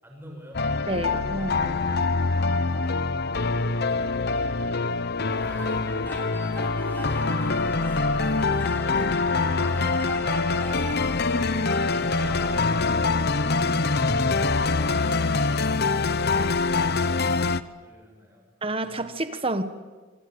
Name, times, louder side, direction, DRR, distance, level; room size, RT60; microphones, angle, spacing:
voice 1, 0.0-1.7 3.6-4.3 4.7-4.9 5.1-5.3 6.7-8.0 11.9-12.8 15.2-17.2 17.8-18.5, equal, 10° right, 1 dB, 7.3 m, -49 dB
sound 1, 0.5-17.6, left 3 dB, 50° left, 0.8 m, -24 dB
voice 2, 0.9-1.8 18.6-19.6, right 2 dB, 25° right, 10 dB, 1.6 m, -29 dB
sound 2, 5.3-12.7, equal, 10° left, 4.6 m, -39 dB
26.0 x 25.0 x 8.2 m, 1.4 s
head